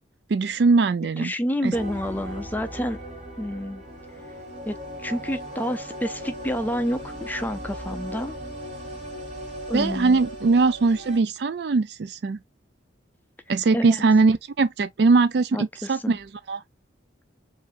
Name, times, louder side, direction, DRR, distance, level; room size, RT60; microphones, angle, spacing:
voice 1, 0.3-1.3 1.6-1.8 9.7-12.4 13.5-16.6, right 4 dB, 60° right, 0.4 m, -21 dB
voice 2, 1.2-3.0 3.4-3.8 4.7-8.3 9.7-10.2 13.7-14.0 15.5-16.2, equal, 10° left, 0.5 m, -29 dB
sound 1, 1.7-11.2, equal, 35° right, 2.4 m, -37 dB
4.8 x 2.7 x 2.4 m
head